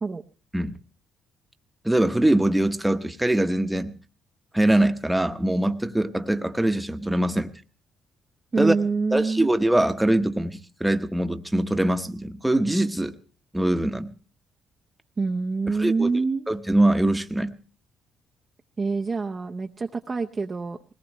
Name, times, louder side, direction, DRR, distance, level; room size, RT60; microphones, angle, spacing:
voice 1, 1.8-3.9 4.5-7.5 8.6-8.7 9.1-13.1 13.5-14.1 15.8-16.1 16.5-17.5, right 1 dB, 5° right, 8 dB, 1.0 m, -22 dB
voice 2, 8.5-9.5 15.2-16.5 18.8-20.8, right 4 dB, 35° right, 2 dB, 0.7 m, -26 dB
20.5 x 18.5 x 3.1 m, 0.38 s
cardioid pair, 90°, 0 cm